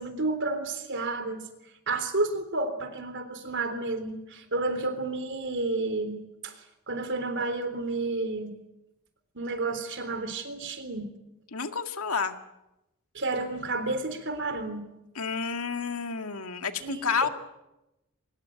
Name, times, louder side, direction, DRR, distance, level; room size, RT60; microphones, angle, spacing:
voice 1, 0.0-1.5 1.9-8.6 9.4-11.1 13.1-14.9 16.8-17.3, right 2 dB, 60° right, 10 dB, 3.7 m, -31 dB
voice 2, 11.5-12.4 15.2-17.3, left 5 dB, 70° left, 7 dB, 2.0 m, -30 dB
24.5 x 20.5 x 9.5 m, 0.93 s
head